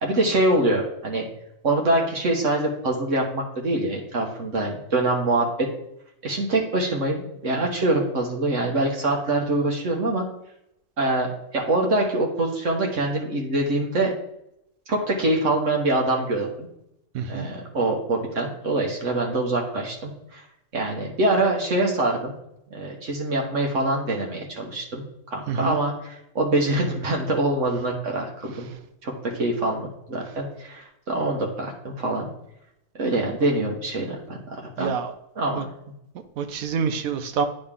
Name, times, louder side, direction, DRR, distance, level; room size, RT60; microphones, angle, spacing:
voice 1, 0.0-1.2 1.6-5.7 6.2-10.3 11.0-14.1 14.9-16.7 17.3-20.4 20.7-22.3 22.7-28.7 29.0-32.3 32.9-34.9 35.4-35.6, right 2 dB, 60° right, 0 dB, 1.4 m, -24 dB
voice 2, 17.1-17.5 25.5-25.8 34.8-35.1 35.5-35.6 36.4-37.5, right 6 dB, 80° right, 9 dB, 1.1 m, -26 dB
10.0 x 3.9 x 3.6 m, 0.79 s
omnidirectional pair, 1.5 m